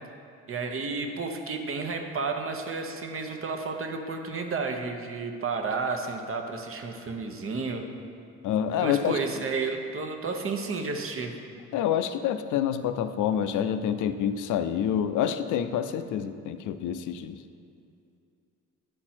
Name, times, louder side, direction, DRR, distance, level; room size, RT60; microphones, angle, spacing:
voice 1, 0.5-7.9 8.8-11.3, right 4 dB, 45° right, 4 dB, 0.9 m, -32 dB
voice 2, 8.4-9.2 11.7-17.4, left 9 dB, 80° left, 10 dB, 0.5 m, -27 dB
10.0 x 4.4 x 4.3 m, 2.5 s
cardioid pair, 90°, 30 cm